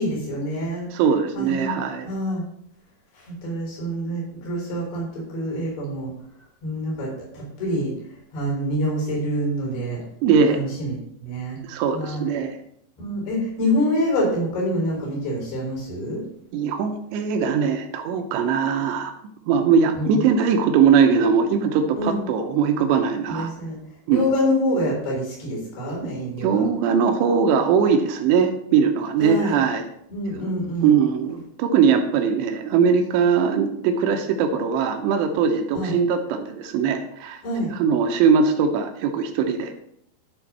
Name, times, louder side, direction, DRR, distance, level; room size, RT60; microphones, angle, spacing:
voice 1, 0.0-0.9 1.3-1.8 2.0-2.4 3.1-6.1 6.6-7.1 7.3-7.9 8.3-10.0 10.5-11.6 11.9-12.2 13.0-16.2 19.9-20.2 21.9-22.2 23.3-23.8 24.1-26.7 29.2-29.6 30.1-30.9 35.7-35.9 37.4-37.7, equal, 65° left, -3 dB, 5.9 m, -26 dB
voice 2, 0.9-2.1 10.2-10.6 11.6-12.6 16.5-19.1 19.5-23.5 24.1-24.3 26.4-29.8 30.8-37.4 37.7-39.7, right 6 dB, 80° right, 6 dB, 2.9 m, -20 dB
11.5 x 4.3 x 6.0 m, 0.70 s
omnidirectional pair, 5.2 m